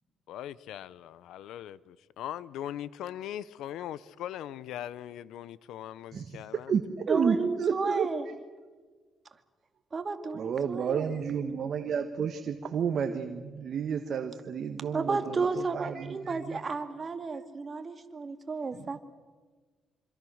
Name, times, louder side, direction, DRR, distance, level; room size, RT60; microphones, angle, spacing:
voice 1, 0.3-6.7, left 11 dB, 85° left, 18 dB, 0.7 m, -40 dB
voice 2, 6.1-6.4 6.7-8.3 10.3-16.6 18.7-19.0, right 7 dB, 55° right, 6 dB, 1.5 m, -31 dB
voice 3, 7.1-8.2 9.9-11.1 14.9-19.0, right 4 dB, 35° right, 7 dB, 2.1 m, -32 dB
26.0 x 26.0 x 6.5 m, 1.4 s
cardioid pair, 90°, 0 cm